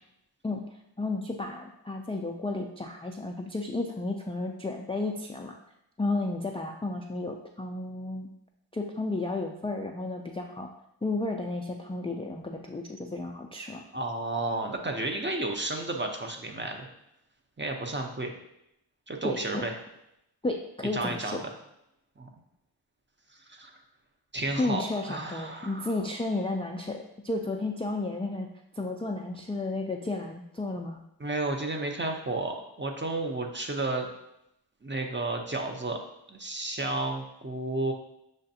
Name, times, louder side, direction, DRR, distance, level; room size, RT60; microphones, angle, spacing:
voice 1, 1.0-5.5 6.0-8.3 8.7-10.7 11.0-13.8 19.2-19.6 20.4-21.4 24.6-28.5 28.8-31.0, left 2 dB, 15° left, 1 dB, 0.3 m, -32 dB
voice 2, 13.9-16.9 17.6-18.3 19.1-19.8 20.9-21.4 22.2-22.3 23.5-23.7 24.3-26.0 31.2-34.1 34.8-36.0 36.3-37.9, right 2 dB, 25° right, 2 dB, 0.6 m, -32 dB
6.4 x 2.5 x 2.7 m, 0.81 s
wide cardioid pair, 45°, 43 cm